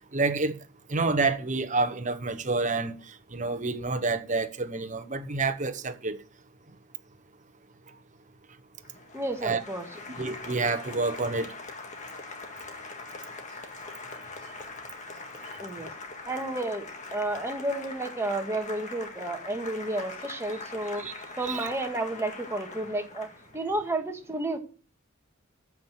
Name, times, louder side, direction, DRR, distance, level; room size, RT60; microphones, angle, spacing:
voice 1, 0.1-0.5 0.9-2.9 3.3-6.2 9.4-9.6 10.2-11.5 21.0-21.1 21.4-21.7, right 3 dB, 40° right, 1.1 m, -28 dB
Applause, 8.8-23.6, left 3 dB, 35° left, 1.7 m, -42 dB
voice 2, 9.1-9.8 15.6-15.9 16.3-21.0 21.4-23.3 23.5-24.6, right 2 dB, 15° right, 1.7 m, -31 dB
14.0 x 6.0 x 7.4 m
head